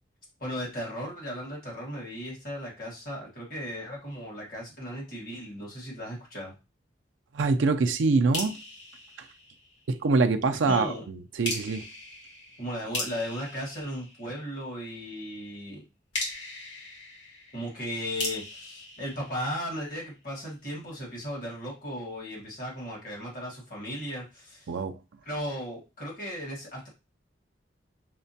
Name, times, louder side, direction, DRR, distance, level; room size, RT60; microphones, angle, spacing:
voice 1, 0.4-6.5 10.6-11.0 12.6-15.8 17.5-24.7 25.2-26.9, equal, 45° left, 1.6 m, -36 dB
voice 2, 7.3-8.6 9.9-11.8 24.7-25.0, right 3 dB, 75° right, 0.4 m, -24 dB
sound 1, 8.3-10.1 11.4-14.8 16.1-20.0, left 2 dB, 80° left, 1.5 m, -39 dB
5.8 x 2.2 x 2.7 m
head